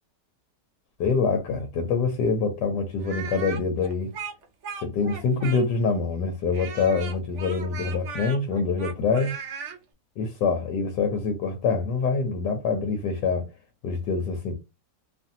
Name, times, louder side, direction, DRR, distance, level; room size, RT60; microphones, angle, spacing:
voice 1, 1.0-4.1 4.8-9.4 10.2-13.5 13.8-14.6, left 4 dB, 80° left, 1.2 m, -25 dB
Speech, 3.0-5.9 6.5-9.8, right 6 dB, 55° right, 0.9 m, -37 dB
2.9 x 2.5 x 2.6 m
omnidirectional pair, 1.9 m